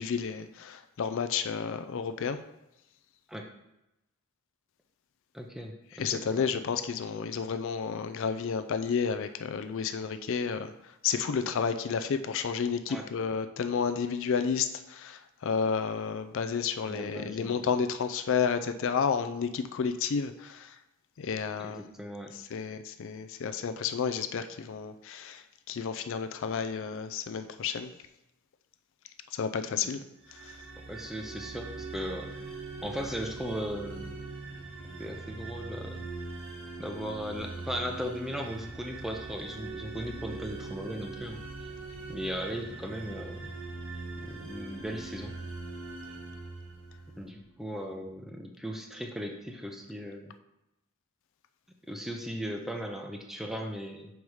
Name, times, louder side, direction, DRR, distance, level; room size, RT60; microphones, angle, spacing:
voice 1, 0.0-2.4 6.0-10.7 11.0-20.7 21.2-21.8 22.5-27.9 29.3-30.0 30.4-30.5, left 6 dB, 60° left, 9 dB, 0.4 m, -31 dB
voice 2, 5.3-6.6 12.9-13.1 16.9-17.5 21.6-22.3 30.9-32.6 32.8-34.1 35.0-36.1 36.8-41.7 42.1-43.5 44.1-45.4 47.2-50.3 51.9-54.1, equal, ahead, 2 dB, 0.6 m, -37 dB
sound 1, 30.2-47.4, right 3 dB, 65° right, 1.4 m, -42 dB
5.5 x 4.7 x 4.8 m, 0.90 s
head